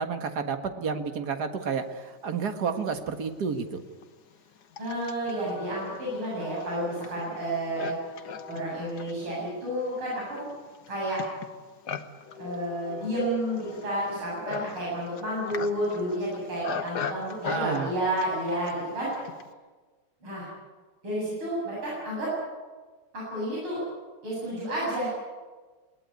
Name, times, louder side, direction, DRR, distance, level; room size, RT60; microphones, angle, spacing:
voice 1, 0.0-3.8 17.5-17.9, right 5 dB, 50° right, 7 dB, 2.0 m, -30 dB
Livestock farm animals working animals, 2.8-2.9 3.6-19.5, left 6 dB, 55° left, 1.6 m, -40 dB
voice 2, 4.8-8.1 8.5-10.5 10.9-11.3 12.3-19.1 20.2-20.5 21.0-22.3 23.1-23.8 24.2-25.1, right 1 dB, 70° right, -6 dB, 8.9 m, -31 dB
20.5 x 18.5 x 9.6 m, 1.4 s
omnidirectional pair, 2.4 m